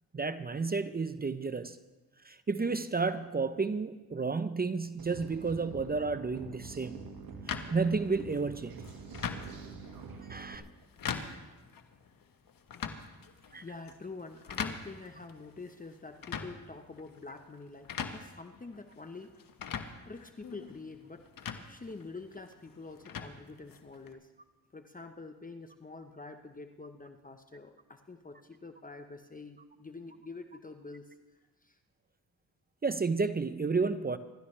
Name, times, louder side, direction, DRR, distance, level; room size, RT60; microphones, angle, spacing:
voice 1, 0.1-1.8 2.2-7.0 7.7-8.8 10.2-10.6 13.5-13.6 32.8-34.2, right 4 dB, 25° right, 12 dB, 0.7 m, -31 dB
sound 1, 5.0-10.6, right 5 dB, 70° right, 1.9 m, -46 dB
sound 2, 7.5-24.1, left 6 dB, 60° left, 1.4 m, -43 dB
voice 2, 13.6-19.5 20.0-24.3 24.7-31.2 31.6-31.8, left 3 dB, 20° left, 6 dB, 1.0 m, -47 dB
27.0 x 12.5 x 3.3 m, 1.2 s
cardioid pair, 75°, 38 cm